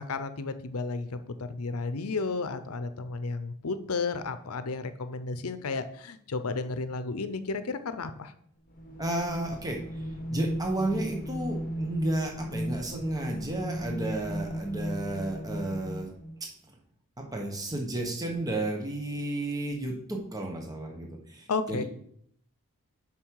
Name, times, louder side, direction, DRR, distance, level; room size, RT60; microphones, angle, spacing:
voice 1, 0.0-8.3 21.5-21.8, left 4 dB, 75° left, 11 dB, 0.7 m, -33 dB
sound 1, 8.7-16.4, equal, 40° left, 1.1 m, -36 dB
voice 2, 9.0-10.0 10.3-16.1 16.4-16.5 17.2-21.8, right 1 dB, 15° right, 1 dB, 1.2 m, -32 dB
7.4 x 6.1 x 4.8 m, 0.67 s
head